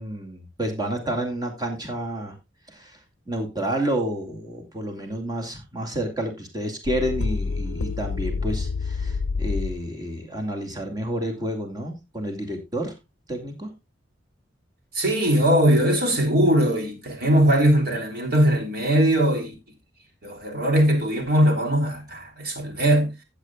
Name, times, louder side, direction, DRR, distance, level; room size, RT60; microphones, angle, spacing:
voice 1, 0.0-2.4 2.7-3.0 3.3-13.0 13.3-13.7, right 1 dB, 20° right, 2.4 m, -30 dB
sound 1, 6.8-9.8, left 4 dB, 75° left, 0.5 m, -27 dB
voice 2, 14.9-19.5 20.2-23.1, right 1 dB, 55° right, 3.3 m, -20 dB
15.0 x 8.7 x 2.3 m
head